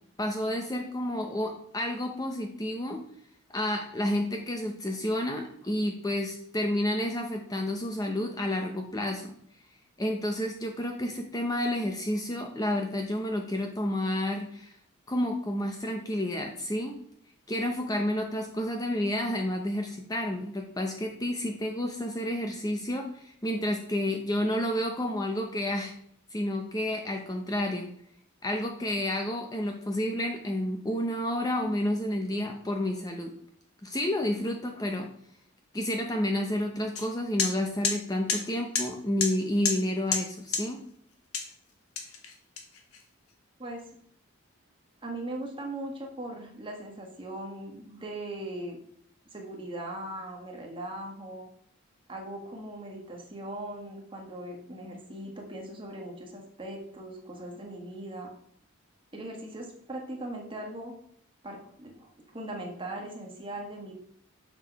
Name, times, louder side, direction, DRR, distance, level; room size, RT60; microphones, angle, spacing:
voice 1, 0.2-3.0 3.5-9.3 10.0-14.7 15.1-17.0 17.5-25.9 26.3-27.9 28.4-33.3 33.8-35.1 35.7-40.8, left 1 dB, 15° left, 3 dB, 0.7 m, -30 dB
sound 1, 37.0-37.1 37.4-37.5 37.8-38.0 38.3-38.4 38.8-38.9 39.2-39.3 39.7-39.8 40.1-40.2 40.5-40.6 41.3-41.5 42.0-43.0, left 5 dB, 85° left, 1.4 m, -28 dB
voice 2, 45.0-48.8 49.3-51.5 52.1-58.3 59.1-61.0 61.4-63.9, right 1 dB, 25° right, 1 dB, 1.5 m, -39 dB
6.7 x 6.0 x 4.6 m, 0.67 s
head